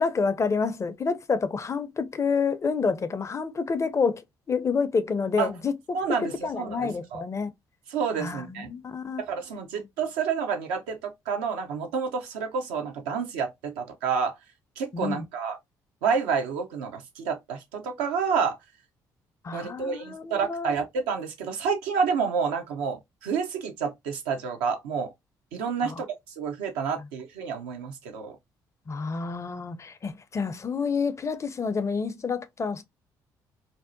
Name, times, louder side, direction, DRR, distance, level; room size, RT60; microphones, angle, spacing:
voice 1, 0.0-4.2 4.5-6.0 6.4-7.5 8.2-9.2 14.9-15.2 19.4-20.7 25.8-26.0 28.9-32.8, left 5 dB, 30° left, 0.4 m, -28 dB
voice 2, 5.9-7.2 7.9-8.7 9.2-14.4 14.8-15.6 16.0-18.6 19.5-25.1 25.5-26.1 26.4-28.3, right 6 dB, 85° right, 0.5 m, -29 dB
2.6 x 2.1 x 2.5 m
hypercardioid pair, 50°, 9 cm